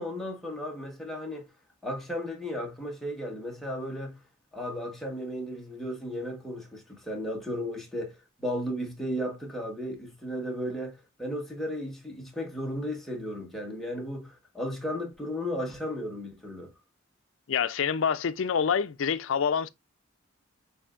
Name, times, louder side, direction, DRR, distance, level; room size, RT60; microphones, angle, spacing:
voice 1, 0.0-1.5 1.8-4.2 4.5-16.7, equal, ahead, 1.2 m, -35 dB
voice 2, 17.5-19.7, left 7 dB, 75° left, 0.4 m, -26 dB
6.9 x 2.7 x 2.4 m
head